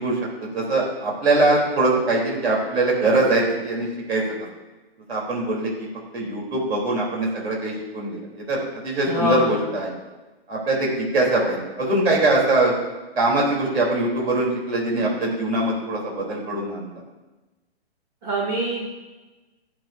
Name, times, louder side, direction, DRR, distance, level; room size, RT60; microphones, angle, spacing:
voice 1, 0.0-4.2 5.1-5.9 6.1-8.6 8.8-9.9 10.5-12.7 13.2-17.0, right 2 dB, 70° right, -3 dB, 3.7 m, -22 dB
voice 2, 9.1-9.5 18.2-18.9, equal, 40° right, -4 dB, 2.7 m, -24 dB
17.0 x 7.7 x 2.7 m, 1.2 s
hypercardioid pair, 140°, 32 cm